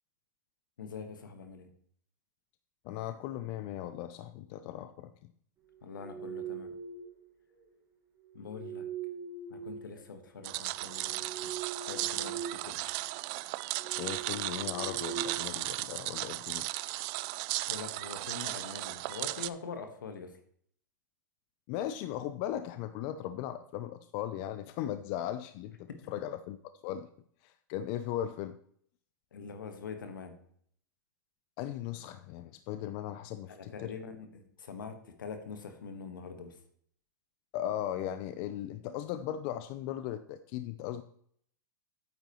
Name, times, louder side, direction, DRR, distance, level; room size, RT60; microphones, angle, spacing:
voice 1, 0.8-1.7 5.8-6.7 8.3-8.9 9.5-11.5 11.9-12.6 17.7-20.4 25.9-26.0 29.3-30.3 33.5-36.6, left 5 dB, 85° left, 7 dB, 1.5 m, -44 dB
voice 2, 2.8-5.3 14.0-16.7 21.7-26.6 26.8-27.1 27.4-28.6 31.6-33.9 37.5-41.0, left 11 dB, 45° left, 12 dB, 0.5 m, -37 dB
sound 1, 5.8-7.3 8.3-10.4 10.8-12.7 13.0-13.2 13.7-16.1, right 6 dB, 25° right, 1.9 m, -42 dB
sound 2, 10.4-19.5, right 20 dB, 45° right, 0.4 m, -36 dB
9.2 x 8.2 x 3.1 m, 0.63 s
hypercardioid pair, 115°, 11 cm